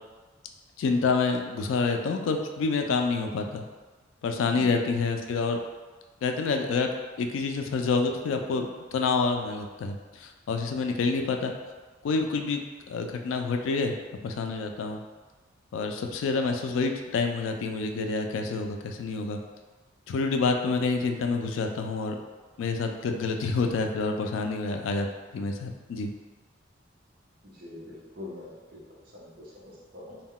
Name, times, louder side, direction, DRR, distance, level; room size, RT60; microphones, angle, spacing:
voice 1, 0.8-3.6 4.2-5.6 6.2-6.9 7.2-11.5 12.0-12.6 12.9-14.0 14.2-15.0 15.7-19.4 20.1-22.2 22.6-25.1 25.3-26.1, left 4 dB, 80° left, 5 dB, 0.3 m, -28 dB
voice 2, 27.4-28.8 29.1-30.2, left 2 dB, 50° right, -5 dB, 0.7 m, -43 dB
2.2 x 2.2 x 3.6 m, 1.3 s
head